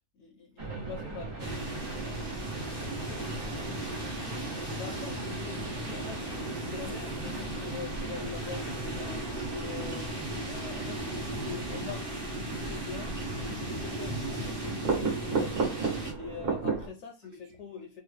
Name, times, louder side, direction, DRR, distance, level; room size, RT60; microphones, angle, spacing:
voice 1, 0.1-2.5 4.7-8.7 8.9-10.2 10.5-18.0, left 6 dB, 70° left, 0.9 m, -44 dB
sound 1, 0.6-16.9, right 4 dB, 80° right, 1.5 m, -37 dB
sound 2, 1.4-16.1, right 2 dB, 25° right, 0.6 m, -36 dB
voice 2, 2.5-4.5 17.2-17.6, right 2 dB, 55° right, 1.2 m, -53 dB
3.5 x 2.0 x 3.1 m
omnidirectional pair, 1.3 m